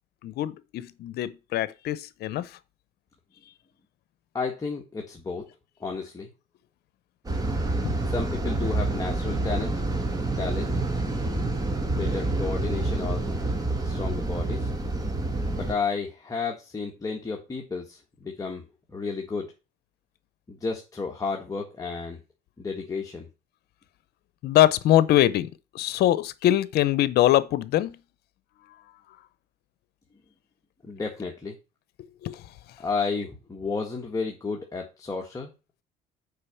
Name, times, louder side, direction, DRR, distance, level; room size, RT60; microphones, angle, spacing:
voice 1, 0.2-2.6 7.8-7.9 24.4-25.5 25.7-28.0 32.2-32.5, left 13 dB, 75° left, 0.7 m, -23 dB
voice 2, 4.3-5.4 5.8-6.3 8.1-9.7 10.4-10.8 11.9-13.3 13.8-14.7 15.5-18.6 18.9-19.5 20.5-22.2 22.6-23.3 30.8-31.6 32.8-35.5, left 4 dB, 20° left, 1.6 m, -32 dB
sound 1, 7.2-15.7, right 2 dB, 20° right, 1.9 m, -28 dB
6.6 x 5.0 x 7.0 m
cardioid pair, 110°, 17 cm